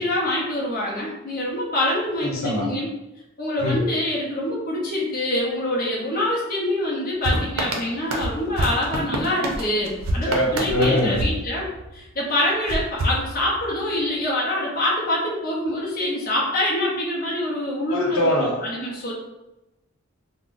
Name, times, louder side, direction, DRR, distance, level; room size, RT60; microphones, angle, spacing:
voice 1, 0.0-2.9 3.4-11.7 11.9-19.1, left 1 dB, 45° left, -4 dB, 0.7 m, -25 dB
voice 2, 2.2-2.7 3.6-3.9 10.3-11.2 17.9-18.6, left 1 dB, 90° left, -2 dB, 0.8 m, -23 dB
sound 1, 7.2-12.1 12.7-13.9, right 1 dB, 85° right, 0.5 m, -28 dB
3.7 x 2.1 x 2.5 m, 0.95 s
head